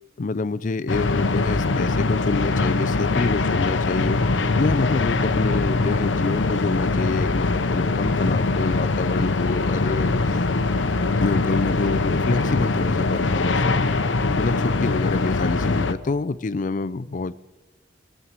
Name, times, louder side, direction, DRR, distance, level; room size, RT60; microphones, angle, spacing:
voice 1, 0.2-4.2 4.6-10.2 11.2-13.9 14.3-17.3, left 3 dB, 40° left, 0.4 m, -27 dB
sound 1, 0.9-15.9, left 3 dB, 70° left, 0.7 m, -22 dB
18.5 x 7.5 x 9.5 m
head